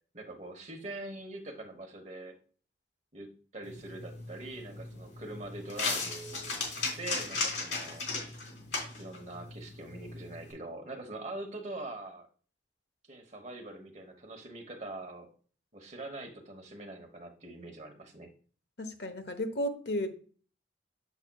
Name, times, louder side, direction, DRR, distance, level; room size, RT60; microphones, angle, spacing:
voice 1, 0.1-2.4 3.1-8.1 8.9-12.3 13.1-15.3 15.7-18.3, right 2 dB, 40° right, 3 dB, 1.1 m, -43 dB
sound 1, 3.6-10.5, left 3 dB, 75° left, 3.1 m, -37 dB
voice 2, 18.8-20.1, left 1 dB, 60° left, 7 dB, 0.9 m, -33 dB
7.4 x 7.1 x 2.3 m, 0.42 s
head